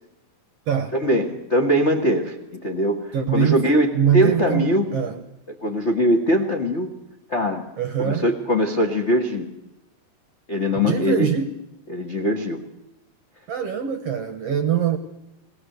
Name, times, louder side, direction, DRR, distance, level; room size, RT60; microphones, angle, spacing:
voice 1, 0.9-4.9 5.6-6.9 7.3-7.7 8.0-9.5 10.5-11.3 11.9-12.6, equal, 75° left, 0.6 m, -21 dB
voice 2, 3.1-3.6 3.9-5.2 7.8-8.3 10.8-11.5 13.5-15.0, right 8 dB, 70° right, 1.6 m, -23 dB
21.0 x 19.0 x 7.9 m
omnidirectional pair, 4.2 m